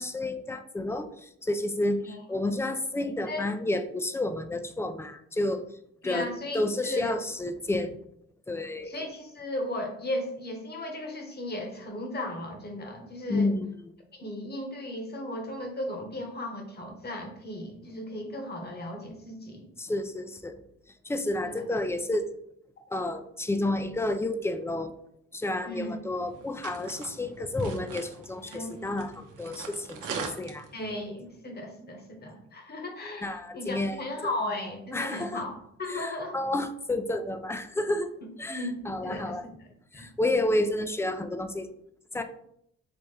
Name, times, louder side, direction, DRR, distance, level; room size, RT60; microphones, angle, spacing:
voice 1, 0.0-5.6 6.0-8.0 8.5-8.9 13.3-13.9 19.8-20.6 21.0-22.3 22.9-24.9 25.3-30.7 33.2-34.0 34.9-35.4 35.9-38.1 38.4-39.4 39.9-41.7 42.1-42.2, left 2 dB, 10° left, 9 dB, 0.4 m, -30 dB
voice 2, 6.0-7.1 8.8-13.5 14.1-19.7 21.4-21.6 25.6-26.0 28.5-28.8 30.7-36.3 38.5-39.5 39.9-40.1, left 1 dB, 35° left, 2 dB, 1.2 m, -36 dB
sound 1, 26.1-31.0, right 5 dB, 80° right, 0.8 m, -42 dB
4.2 x 3.4 x 3.3 m, 0.72 s
cardioid pair, 90°, 30 cm